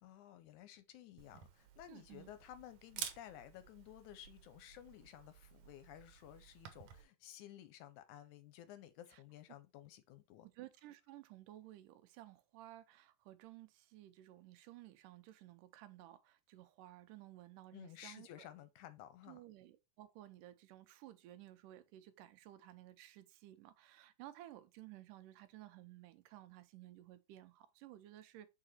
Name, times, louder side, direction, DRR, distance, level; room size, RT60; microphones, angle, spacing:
voice 1, 0.0-10.5 17.7-19.4, left 12 dB, 80° left, 2.0 m, -55 dB
Camera, 1.2-7.0, right 9 dB, 70° right, 2.0 m, -52 dB
voice 2, 1.9-2.3 9.1-9.2 10.6-18.5 19.3-28.5, right 14 dB, 85° right, 2.3 m, -56 dB
4.9 x 4.8 x 4.2 m
omnidirectional pair, 3.7 m